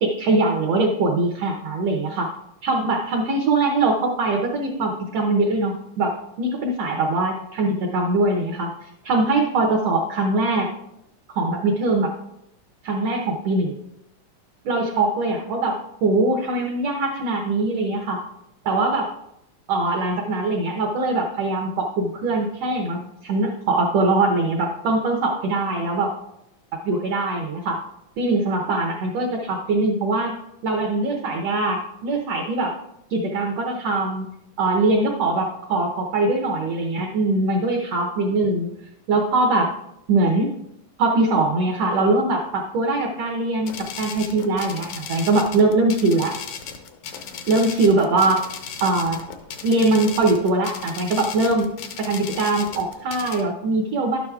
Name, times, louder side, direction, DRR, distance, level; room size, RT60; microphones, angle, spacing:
voice 1, 0.0-2.3 2.6-10.7 11.3-12.2 12.8-13.8 14.6-18.2 18.6-19.1 19.7-26.1 26.7-27.8 28.2-30.4 30.6-32.8 33.1-34.3 34.6-38.7 39.1-39.7 40.1-40.5 41.0-46.4 47.5-48.4 48.8-49.2 49.6-51.7 52.0-54.2, right 2 dB, 75° right, 2 dB, 1.5 m, -22 dB
sound 1, 43.7-53.4, left 7 dB, 75° left, 1.9 m, -36 dB
12.0 x 9.2 x 2.4 m, 0.82 s
omnidirectional pair, 3.9 m